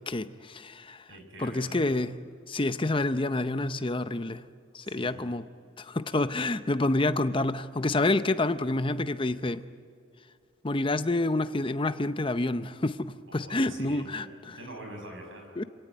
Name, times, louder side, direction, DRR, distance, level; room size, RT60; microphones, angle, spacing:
voice 1, 0.1-1.1 1.4-2.1 2.5-4.4 4.7-5.4 5.8-9.6 10.6-14.6 15.6-15.7, left 2 dB, 25° left, 12 dB, 0.7 m, -28 dB
voice 2, 1.1-1.8 4.8-5.3 13.3-15.5, right 1 dB, 70° right, 3 dB, 5.9 m, -45 dB
26.5 x 17.5 x 9.3 m, 2.3 s
head